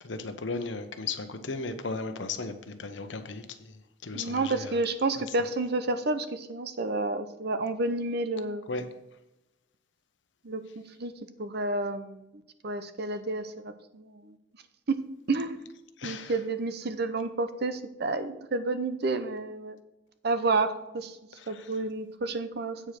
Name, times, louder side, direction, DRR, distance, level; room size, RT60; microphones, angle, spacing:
voice 1, 0.0-3.7 4.0-4.7 8.7-8.8 16.0-16.3 21.4-21.7, left 3 dB, 85° left, 8 dB, 0.9 m, -36 dB
voice 2, 4.1-8.7 10.4-10.6 11.0-11.1 11.4-12.3 12.6-14.3 14.9-15.0 15.3-15.6 16.0-19.8 20.2-21.2 21.5-22.8, right 3 dB, 60° right, 10 dB, 0.7 m, -30 dB
8.6 x 5.0 x 5.9 m, 0.94 s
head